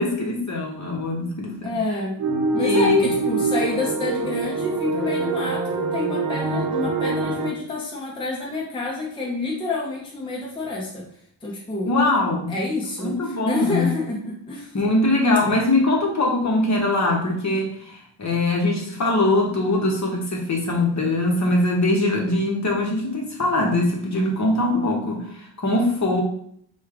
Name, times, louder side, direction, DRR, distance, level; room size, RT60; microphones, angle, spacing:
voice 1, 0.0-1.7 2.6-3.1 11.8-12.5 13.0-13.9 14.7-26.2, left 2 dB, 40° left, -1 dB, 0.9 m, -22 dB
voice 2, 1.5-2.1 2.5-11.1 11.4-12.0 12.5-14.7, left 2 dB, 10° left, -4 dB, 0.6 m, -28 dB
sound 1, 2.2-7.5, right 4 dB, 45° right, 0.8 m, -24 dB
5.0 x 2.3 x 3.6 m, 0.65 s
wide cardioid pair, 170°, 44 cm